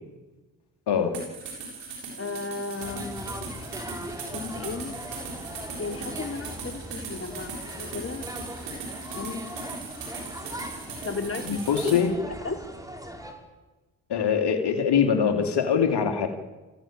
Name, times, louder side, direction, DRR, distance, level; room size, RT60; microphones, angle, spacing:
voice 1, 0.9-1.2 11.5-12.1 14.1-16.3, left 7 dB, 65° left, 5 dB, 2.9 m, -23 dB
sound 1, 1.1-12.0, right 4 dB, 85° right, 7.2 m, -38 dB
voice 2, 2.2-3.3 4.3-5.0 5.8-8.3 9.1-9.4 11.0-11.9 12.4-12.6, left 3 dB, 30° left, 7 dB, 3.3 m, -34 dB
sound 2, 2.8-13.3, equal, 10° right, 5.2 m, -40 dB
25.0 x 15.0 x 8.9 m, 1.2 s
supercardioid pair, 55°, 43 cm